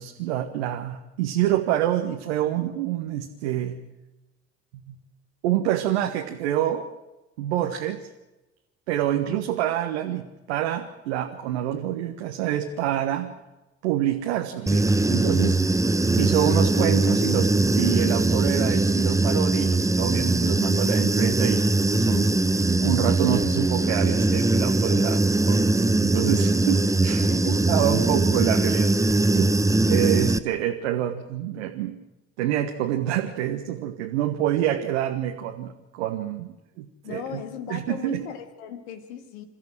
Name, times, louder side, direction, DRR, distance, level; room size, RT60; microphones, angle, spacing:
voice 1, 0.0-3.8 4.7-5.0 5.4-6.8 7.4-8.1 8.9-13.3 13.8-15.6 16.2-22.3 22.8-25.6 26.0-29.5 29.9-31.9 32.4-37.4 37.7-38.2, right 12 dB, 70° right, 4 dB, 1.4 m, -27 dB
Human voice / Buzz, 14.7-30.4, right 2 dB, 10° right, 1.0 m, -21 dB
voice 2, 27.2-27.7 37.0-39.5, left 8 dB, 70° left, 8 dB, 2.1 m, -37 dB
28.5 x 14.5 x 7.7 m, 1.0 s
figure-of-eight pair, 50°, 34 cm